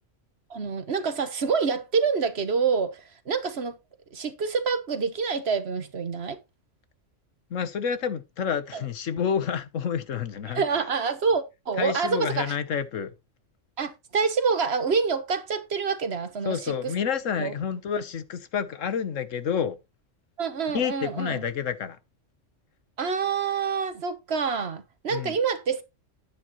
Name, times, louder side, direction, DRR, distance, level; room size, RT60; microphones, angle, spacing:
voice 1, 0.5-3.8 4.1-6.4 8.7-8.8 10.5-12.5 13.8-16.9 17.4-17.5 20.4-21.4 23.0-25.8, right 5 dB, 55° right, 1.4 m, -27 dB
voice 2, 7.5-10.6 11.8-13.1 16.4-19.8 20.7-22.0 25.1-25.4, left 7 dB, 85° left, 1.4 m, -29 dB
10.0 x 10.0 x 3.0 m
omnidirectional pair, 1.3 m